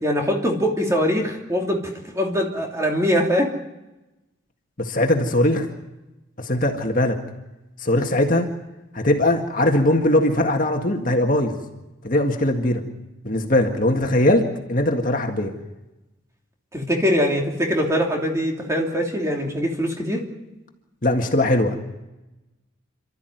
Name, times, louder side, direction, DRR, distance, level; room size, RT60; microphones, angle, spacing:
voice 1, 0.0-1.8 2.1-3.5 16.7-20.2, equal, 15° right, 1 dB, 3.1 m, -22 dB
voice 2, 4.8-5.7 6.4-7.2 7.8-8.5 8.9-11.6 12.0-12.8 13.2-15.5 21.0-21.8, left 1 dB, 40° left, 3 dB, 1.9 m, -20 dB
28.5 x 13.0 x 9.4 m, 1.0 s
head